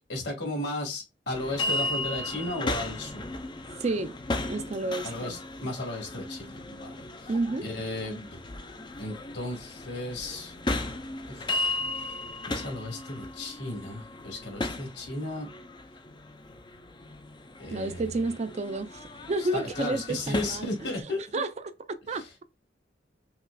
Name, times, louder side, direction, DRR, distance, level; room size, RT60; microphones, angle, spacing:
voice 1, 0.1-3.3 5.0-7.3 7.6-8.4 9.0-10.5 11.3-11.5 12.0-12.2 12.5-15.5 17.6-18.1 19.4-21.2 22.1-22.3, left 1 dB, 70° left, 1.9 m, -35 dB
sound 1, 1.3-21.0, left 2 dB, 25° left, 0.5 m, -36 dB
voice 2, 3.8-4.1 4.5-5.4 7.3-7.7 17.7-20.6 21.3-21.7 22.1-22.2, right 2 dB, 35° right, 0.4 m, -30 dB
5.7 x 2.4 x 2.2 m
head